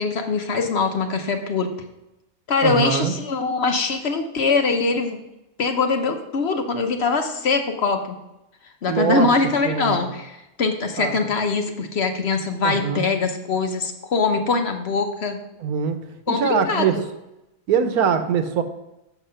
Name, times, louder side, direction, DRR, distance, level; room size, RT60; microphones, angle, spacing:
voice 1, 0.0-1.7 2.5-5.2 5.6-8.2 8.8-15.4 16.3-17.0, left 4 dB, 55° left, 5 dB, 0.9 m, -22 dB
voice 2, 2.6-3.1 8.9-9.3 9.6-10.1 11.0-11.3 11.8-11.9 12.6-13.0 15.6-16.0 16.3-17.0 17.7-18.6, right 7 dB, 85° right, 8 dB, 1.3 m, -22 dB
7.2 x 5.8 x 5.5 m, 0.92 s
omnidirectional pair, 1.5 m